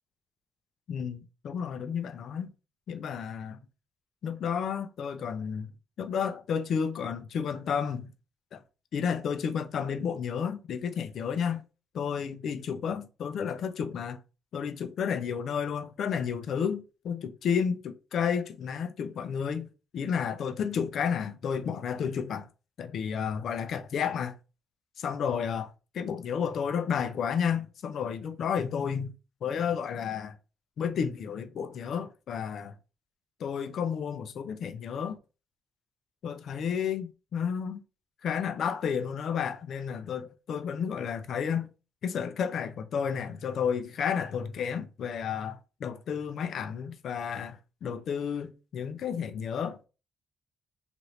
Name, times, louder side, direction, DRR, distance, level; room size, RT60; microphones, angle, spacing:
voice 1, 0.9-2.5 2.9-3.6 4.2-5.7 6.0-8.1 8.5-8.6 8.9-11.6 11.9-14.2 14.5-22.5 22.8-24.3 25.0-29.1 29.4-30.4 30.8-32.7 33.4-35.2 36.2-37.8 38.2-41.7 42.0-49.9, left 7 dB, 65° left, 0.4 m, -31 dB
2.8 x 2.5 x 3.1 m
cardioid pair, 90°, 0 cm